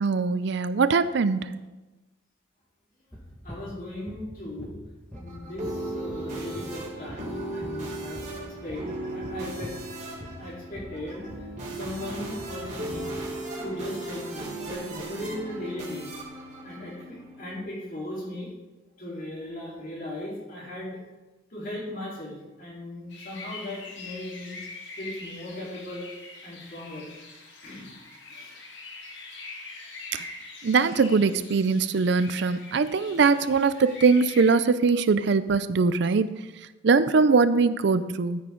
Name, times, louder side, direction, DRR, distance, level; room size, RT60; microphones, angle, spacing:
voice 1, 0.0-1.5 30.1-30.2 30.6-36.3 36.8-38.4, right 4 dB, 60° right, 14 dB, 0.4 m, -22 dB
sound 1, 3.1-9.9 10.1-13.2, equal, 5° left, 1.6 m, -42 dB
voice 2, 3.4-4.8 5.1-8.2 8.6-8.8 9.1-9.7 10.4-11.2 11.7-13.1 13.6-16.1 16.6-18.5 18.9-21.0 21.5-24.6 25.0-26.1 26.4-27.1 27.6-27.9 28.3-28.5, left 1 dB, 45° left, -5 dB, 4.0 m, -37 dB
sound 2, 5.1-17.6, right 1 dB, 40° right, 3.5 m, -36 dB
sound 3, 23.1-34.5, left 3 dB, 60° left, 2.0 m, -43 dB
13.0 x 9.2 x 3.9 m, 1.1 s
head